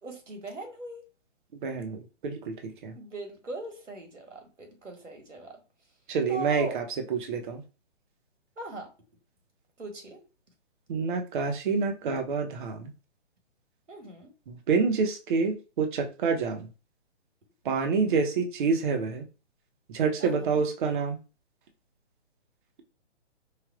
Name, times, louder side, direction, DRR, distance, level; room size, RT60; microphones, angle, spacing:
voice 1, 0.0-1.0 2.9-5.6 6.3-6.8 8.6-8.9 9.8-10.2 13.9-14.3 20.2-20.6, right 3 dB, 90° right, 3 dB, 1.6 m, -40 dB
voice 2, 1.5-2.9 6.1-6.8 7.1-7.6 10.9-12.9 14.5-16.7 17.6-19.2 19.9-21.2, right 5 dB, 45° right, 5 dB, 0.8 m, -27 dB
4.9 x 2.4 x 2.4 m, 0.32 s
hypercardioid pair, 140°, 36 cm